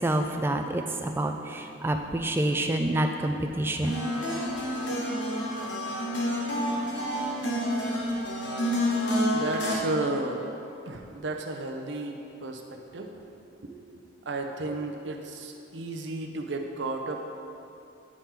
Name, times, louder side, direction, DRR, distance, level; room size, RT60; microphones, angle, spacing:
voice 1, 0.0-4.1, right 1 dB, 10° right, 4 dB, 0.3 m, -27 dB
sound 1, 3.8-9.7, equal, 60° left, 1.0 m, -29 dB
voice 2, 9.3-10.5 10.9-13.1 13.6-17.2, right 2 dB, 60° right, 3 dB, 0.6 m, -33 dB
9.5 x 3.7 x 4.3 m, 2.7 s
head